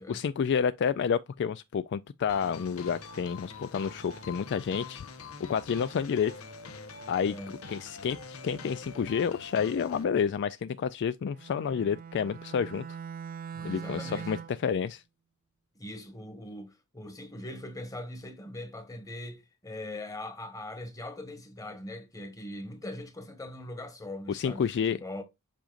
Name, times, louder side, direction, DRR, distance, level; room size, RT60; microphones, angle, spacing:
voice 1, 0.1-5.1 5.5-6.3 7.1-7.4 7.7-13.0 13.6-15.0 24.3-25.0, left 7 dB, 55° left, 0.3 m, -29 dB
sound 1, 2.3-10.0, left 4 dB, 80° left, 1.0 m, -45 dB
voice 2, 7.2-7.6 13.5-14.3 15.7-25.2, left 1 dB, 15° left, 1.4 m, -41 dB
Bowed string instrument, 11.3-14.7, right 7 dB, 40° right, 0.5 m, -42 dB
7.5 x 5.1 x 2.5 m
head